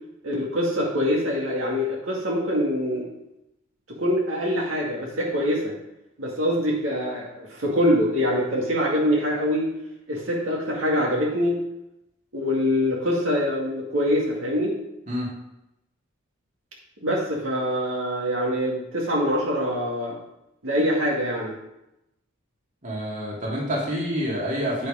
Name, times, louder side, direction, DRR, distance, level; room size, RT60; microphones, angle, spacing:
voice 1, 0.2-3.1 3.9-5.7 6.2-9.7 10.1-11.6 12.3-14.8 17.0-20.2 20.6-21.6, equal, 75° right, -3 dB, 2.2 m, -24 dB
voice 2, 22.8-24.9, equal, 40° right, -4 dB, 2.5 m, -27 dB
8.7 x 6.5 x 5.0 m, 0.88 s
head